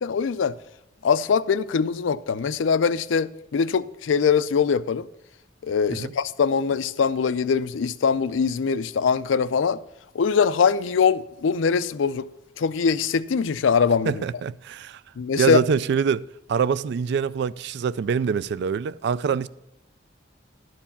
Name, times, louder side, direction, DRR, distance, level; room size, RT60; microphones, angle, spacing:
voice 1, 0.0-0.5 1.0-5.1 5.6-9.8 10.1-12.2 12.6-14.1 15.2-15.6, left 6 dB, 85° left, 0.4 m, -22 dB
voice 2, 14.1-15.0 15.4-19.5, right 6 dB, 60° right, 0.3 m, -25 dB
11.5 x 4.7 x 7.0 m
head